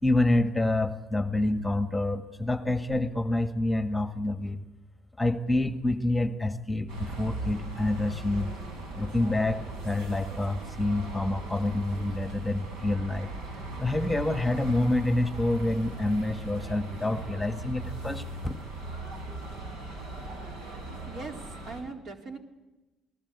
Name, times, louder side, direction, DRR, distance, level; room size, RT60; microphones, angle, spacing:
voice 1, 0.0-4.6 5.2-8.5 9.0-13.3 13.8-18.5, left 2 dB, 10° left, 7 dB, 1.7 m, -27 dB
sound 1, 6.9-21.8, right 2 dB, 80° right, 7.6 m, -39 dB
voice 2, 20.1-20.7 21.1-22.4, right 3 dB, 50° right, 3 dB, 4.2 m, -42 dB
29.0 x 19.5 x 8.4 m, 1.1 s
cardioid pair, 90°, 0 cm